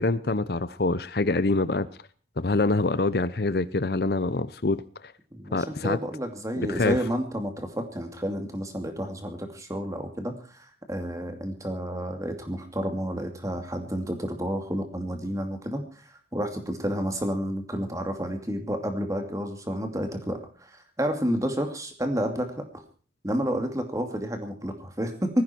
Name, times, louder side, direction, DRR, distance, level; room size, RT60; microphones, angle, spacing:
voice 1, 0.0-1.9 2.4-5.1 5.5-6.0 6.6-7.0, left 3 dB, 55° left, 15 dB, 0.7 m, -25 dB
voice 2, 5.3-22.6 23.2-25.4, equal, 15° right, 6 dB, 2.6 m, -30 dB
18.5 x 15.5 x 4.5 m, 0.39 s
head